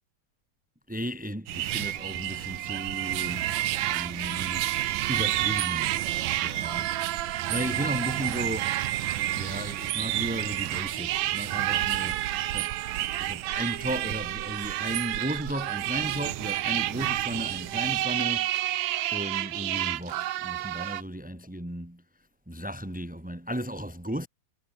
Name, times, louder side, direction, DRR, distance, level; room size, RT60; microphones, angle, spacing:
voice 1, 0.9-4.8 5.1-6.0 6.4-7.0 7.5-8.8 9.3-12.9 13.2-18.8 19.1-24.3, equal, 5° right, 1.8 m, -35 dB
sound 1, 1.5-18.0, right 14 dB, 65° right, 2.3 m, -32 dB
sound 2, 2.0-21.0, right 14 dB, 85° right, 1.6 m, -32 dB
omnidirectional pair, 4.4 m